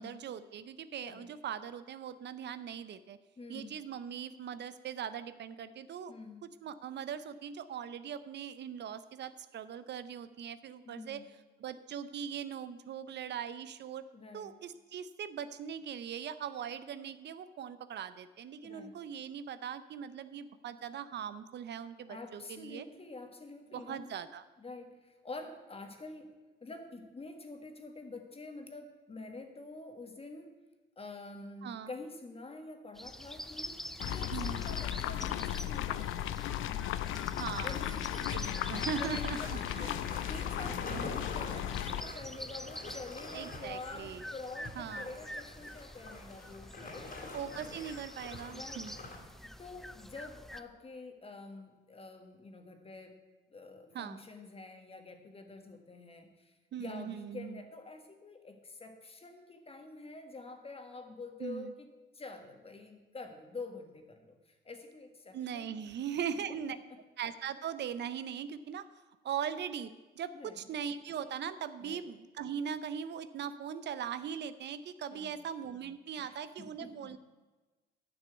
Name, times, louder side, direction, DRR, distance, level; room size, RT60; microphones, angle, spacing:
voice 1, 0.0-3.2 3.5-6.1 6.6-11.2 11.6-14.0 14.3-22.9 23.7-24.4 31.6-31.9 34.3-34.6 37.4-37.8 38.3-40.0 43.3-44.2 44.8-45.1 47.3-49.0 53.9-54.2 56.7-57.6 61.4-61.7 65.3-66.8 67.2-68.8 69.2-77.2, right 8 dB, 60° right, 13 dB, 0.6 m, -40 dB
voice 2, 1.0-1.3 3.4-3.8 6.1-6.5 10.8-11.3 14.1-14.5 18.6-19.0 22.1-24.1 24.6-26.3 26.6-30.5 31.0-33.8 34.1-36.4 37.6-38.3 38.9-47.5 48.5-48.8 49.4-53.2 53.5-61.9 62.1-65.9 66.5-66.6 70.3-70.6 71.8-72.0 75.1-75.5 76.2-77.1, left 3 dB, 30° left, 5 dB, 1.8 m, -47 dB
sound 1, 32.9-50.6, equal, ahead, 0.5 m, -47 dB
sound 2, 34.0-42.0, left 12 dB, 80° left, 0.5 m, -36 dB
sound 3, 36.4-37.0 37.3-37.5 38.0-38.1 38.4-49.2, left 2 dB, 45° left, 2.8 m, -46 dB
10.0 x 6.1 x 8.1 m, 1.2 s
cardioid pair, 90°, 20 cm